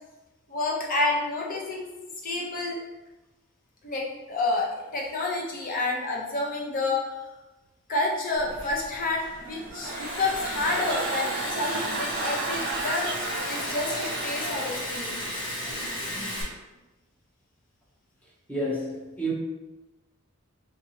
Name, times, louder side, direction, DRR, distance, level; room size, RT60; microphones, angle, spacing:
voice 1, 0.5-1.9 2.2-2.8 3.8-7.2 7.9-13.1 13.5-15.2, left 2 dB, 40° left, -2 dB, 0.7 m, -29 dB
Liquid, 8.4-16.4, left 1 dB, 60° left, 1.2 m, -34 dB
sound 1, 9.3-15.3 15.6-16.0, right 4 dB, 50° right, 0.4 m, -34 dB
voice 2, 18.5-19.3, right 1 dB, 10° left, -5 dB, 0.8 m, -29 dB
3.7 x 2.7 x 2.8 m, 1.1 s
head